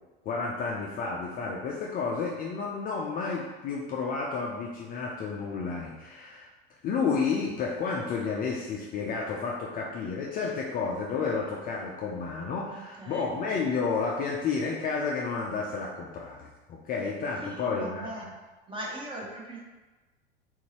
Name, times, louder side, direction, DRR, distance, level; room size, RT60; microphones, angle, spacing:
voice 1, 0.2-6.5 6.8-18.1, left 5 dB, 25° left, -2 dB, 0.4 m, -31 dB
voice 2, 12.7-13.3 17.4-18.3 18.7-19.6, right 1 dB, 15° right, -2 dB, 0.8 m, -40 dB
3.9 x 2.6 x 2.9 m, 1.2 s
hypercardioid pair, 95°, 33 cm